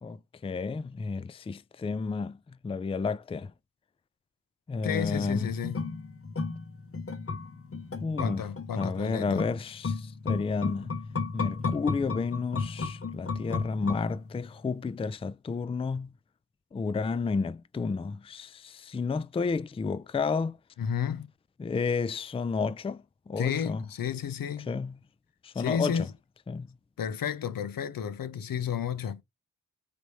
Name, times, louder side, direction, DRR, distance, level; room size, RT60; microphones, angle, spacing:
voice 1, 0.0-2.4 2.6-3.5 4.7-5.5 8.0-8.4 8.7-10.9 11.3-16.1 16.7-20.6 21.6-23.8 24.7-25.0 25.4-26.1 26.5-26.7, left 4 dB, 20° left, 0.3 m, -31 dB
voice 2, 4.8-5.9 8.2-9.5 20.8-21.3 23.4-24.7 25.5-26.1 27.0-29.2, left 7 dB, 80° left, 0.6 m, -32 dB
sound 1, 5.0-14.5 14.8-14.9, left 4 dB, 40° left, 0.8 m, -34 dB
4.0 x 3.4 x 3.1 m
cardioid pair, 55°, 34 cm